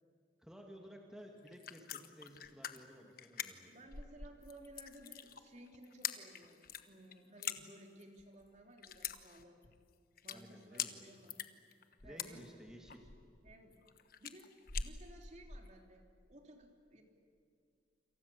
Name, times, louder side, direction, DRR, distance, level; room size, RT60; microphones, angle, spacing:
voice 1, 0.4-3.7 10.3-11.1 12.0-13.1, equal, 5° right, 1 dB, 2.5 m, -55 dB
sound 1, 1.4-15.7, left 8 dB, 55° left, 1.3 m, -45 dB
voice 2, 3.7-9.6 10.2-11.4 12.0-12.7 13.4-13.9 14.2-14.5 14.8-17.0, right 1 dB, 40° right, 2 dB, 3.3 m, -57 dB
28.5 x 27.5 x 7.1 m, 2.3 s
head